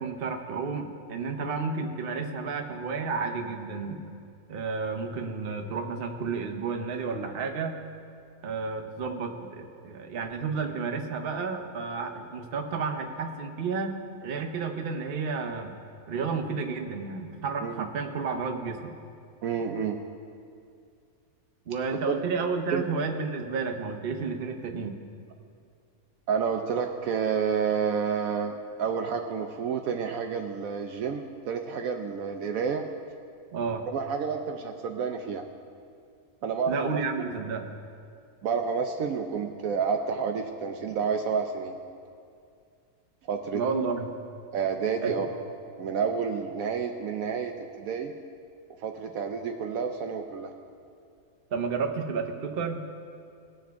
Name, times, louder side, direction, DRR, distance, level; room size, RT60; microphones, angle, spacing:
voice 1, 0.0-4.0 4.5-7.8 8.4-15.7 16.1-18.9 21.7-25.0 33.5-33.8 36.7-37.7 43.5-44.1 45.0-45.1 51.5-52.8, right 4 dB, 45° right, 4 dB, 0.9 m, -31 dB
voice 2, 19.4-20.0 22.7-22.8 26.3-32.8 33.9-35.5 36.4-37.0 38.4-41.8 43.3-43.6 44.5-45.3 45.8-48.1 48.8-50.5, right 6 dB, 70° right, 4 dB, 1.0 m, -29 dB
19.0 x 7.2 x 3.5 m, 2.4 s
omnidirectional pair, 1.6 m